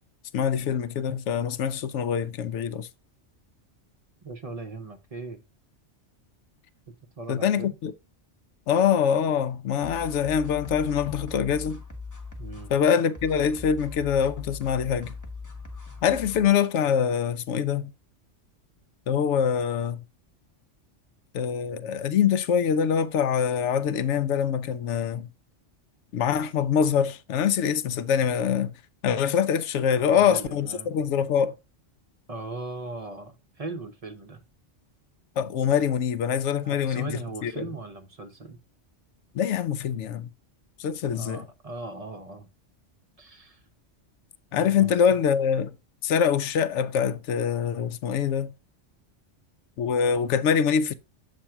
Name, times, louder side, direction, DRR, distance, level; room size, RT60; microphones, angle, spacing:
voice 1, 0.3-2.9 7.3-7.9 8.7-11.8 12.7-15.1 16.0-17.9 19.1-20.0 21.3-25.3 26.1-28.7 29.0-31.5 35.4-37.7 39.3-40.3 40.8-41.4 44.5-45.7 46.0-48.5 49.8-50.9, left 7 dB, 80° left, 0.9 m, -24 dB
voice 2, 4.2-5.4 7.2-7.8 12.4-12.7 29.9-30.9 32.3-34.4 36.6-38.6 41.1-42.5 43.2-43.6 44.6-44.9, right 3 dB, 35° right, 0.7 m, -39 dB
sound 1, 9.8-16.5, left 4 dB, 15° left, 1.1 m, -40 dB
7.5 x 2.6 x 5.6 m
omnidirectional pair, 1.2 m